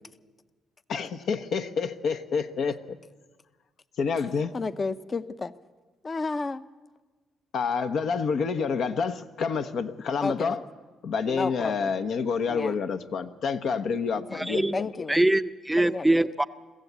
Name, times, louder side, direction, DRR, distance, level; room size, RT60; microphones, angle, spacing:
voice 1, 0.9-3.0 4.0-4.5 7.5-10.7 11.0-14.9, left 5 dB, 70° left, 9 dB, 1.0 m, -28 dB
voice 2, 4.5-5.5 6.0-6.6 10.2-10.5 11.3-11.9 12.5-12.7 14.5-15.2 15.8-16.1, left 3 dB, 35° left, 13 dB, 0.7 m, -32 dB
voice 3, 14.3-14.8 15.1-16.5, right 1 dB, 5° right, 11 dB, 0.5 m, -23 dB
23.0 x 15.0 x 8.2 m, 1.3 s
cardioid pair, 90°, 0 cm